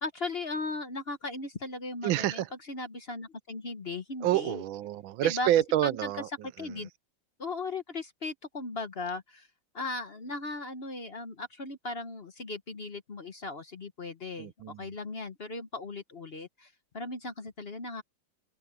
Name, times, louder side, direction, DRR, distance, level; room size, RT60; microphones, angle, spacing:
voice 1, 0.0-4.6 5.2-5.5 5.8-6.1 6.6-6.9 7.4-9.5 9.7-14.5 14.8-18.0, left 3 dB, 40° left, 1.1 m, -37 dB
voice 2, 2.0-2.5 4.2-6.7 14.4-14.9, right 13 dB, 90° right, 1.5 m, -28 dB
omnidirectional pair, 2.1 m